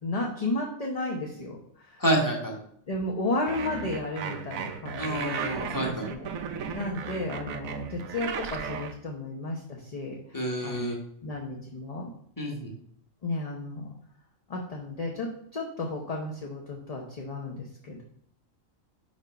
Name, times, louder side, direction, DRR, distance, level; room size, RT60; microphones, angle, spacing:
voice 1, 0.0-2.0 2.9-6.3 6.7-10.9 11.2-12.1 13.2-13.9 14.5-18.0, left 2 dB, 35° left, -1 dB, 0.8 m, -33 dB
voice 2, 2.0-2.6 5.0-6.1 10.3-11.0 12.4-12.7, right 1 dB, 15° left, 0 dB, 1.4 m, -28 dB
sound 1, 3.5-8.9, right 6 dB, 90° right, 1.1 m, -35 dB
5.3 x 4.9 x 5.1 m, 0.68 s
omnidirectional pair, 1.4 m